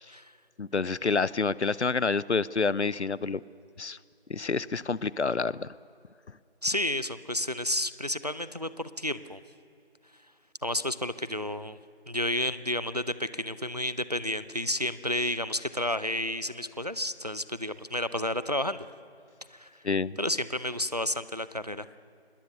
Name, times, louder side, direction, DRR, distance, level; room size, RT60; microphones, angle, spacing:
voice 1, 0.6-3.4 3.8-4.0 4.3-5.7 19.8-20.2, left 4 dB, 90° left, 21 dB, 0.8 m, -28 dB
voice 2, 6.6-9.4 10.6-11.8 12.1-18.9 19.5-19.7 20.2-21.9, left 1 dB, 35° right, 15 dB, 0.6 m, -31 dB
26.5 x 20.0 x 6.7 m, 2.5 s
figure-of-eight pair, 175°, 33 cm